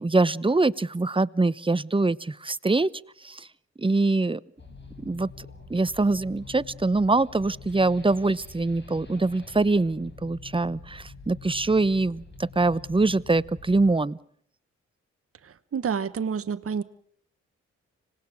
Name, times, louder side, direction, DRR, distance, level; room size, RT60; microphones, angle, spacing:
voice 1, 0.0-2.9 3.2-3.5 3.8-4.4 5.0-12.2 12.5-14.2, right 3 dB, 15° right, 0.9 m, -24 dB
sound 1, 4.6-13.9, left 4 dB, 35° left, 5.7 m, -45 dB
voice 2, 15.4-16.8, right 6 dB, 50° right, 1.1 m, -29 dB
25.5 x 19.0 x 6.4 m
supercardioid pair, 45°, 30 cm